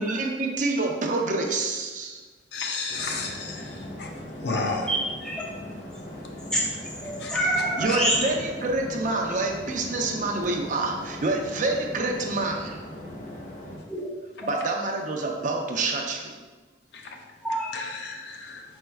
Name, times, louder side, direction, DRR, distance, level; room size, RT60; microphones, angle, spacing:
voice 1, 0.0-2.2 7.8-12.8 14.4-16.3, right 2 dB, 45° right, 1 dB, 0.5 m, -27 dB
voice 2, 2.5-4.1 4.4-4.9 7.2-7.3 16.9-17.0 17.7-18.6, left 3 dB, 70° left, 2 dB, 0.6 m, -32 dB
sound 1, 2.9-13.8, left 1 dB, 45° left, 0.9 m, -39 dB
voice 3, 4.9-5.4 6.5-6.6 7.0-8.2 13.9-14.1 14.4-14.7 17.4-17.7, right 1 dB, 5° left, -4 dB, 0.8 m, -27 dB
4.4 x 4.4 x 2.2 m, 1.3 s
head